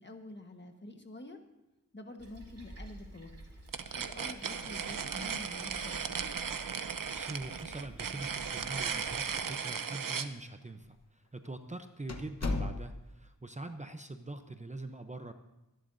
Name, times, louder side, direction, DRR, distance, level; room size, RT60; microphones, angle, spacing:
voice 1, 0.0-1.4 1.9-3.3 3.9-6.3, left 2 dB, 30° left, 5 dB, 1.4 m, -48 dB
Toilet flush, 2.2-9.4, right 1 dB, 45° right, 2.8 m, -52 dB
sound 1, 3.7-10.3, right 6 dB, 70° right, 0.8 m, -36 dB
voice 2, 7.1-15.3, right 2 dB, 20° right, 7 dB, 0.7 m, -43 dB
sound 2, 8.2-8.8 9.1-9.2 10.0-10.1 10.8-11.0 11.4-11.5 12.1-13.2, left 2 dB, 50° left, 1.2 m, -36 dB
25.0 x 11.0 x 2.7 m, 1.0 s
wide cardioid pair, 80°, 34 cm